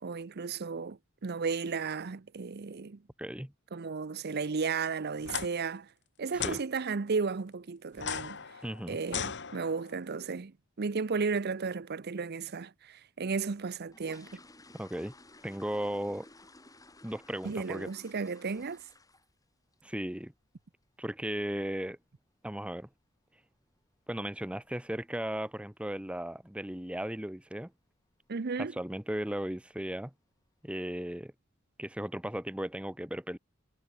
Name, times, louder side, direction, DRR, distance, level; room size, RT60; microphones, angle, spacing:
voice 1, 0.0-3.0 3.7-5.9 6.2-8.4 8.9-14.4 17.4-18.8 28.3-28.7, right 5 dB, 50° right, 0.6 m, -34 dB
voice 2, 3.2-3.5 6.3-6.6 8.6-9.0 14.7-15.1 15.4-16.3 17.0-17.9 19.8-20.3 21.0-22.0 22.4-22.9 24.1-27.7 28.6-30.1 30.6-31.3 31.8-33.4, right 1 dB, 5° right, 1.1 m, -36 dB
sound 1, 5.2-5.5 6.4-6.6 7.9-10.0, left 7 dB, 55° left, 3.6 m, -37 dB
sound 2, 13.6-19.5 19.7-20.0 20.4-20.5 20.8-21.0 21.4-21.6 21.8-21.9 22.5-22.6 22.9-23.0 23.5-23.9 24.1-24.2 24.6-24.8 25.2-25.3 25.7-25.8 26.4-26.7 27.0-27.4 27.7-27.8 28.3-28.4 29.1-29.3 29.7-30.1 30.6-30.7, left 2 dB, 15° left, 3.6 m, -56 dB
head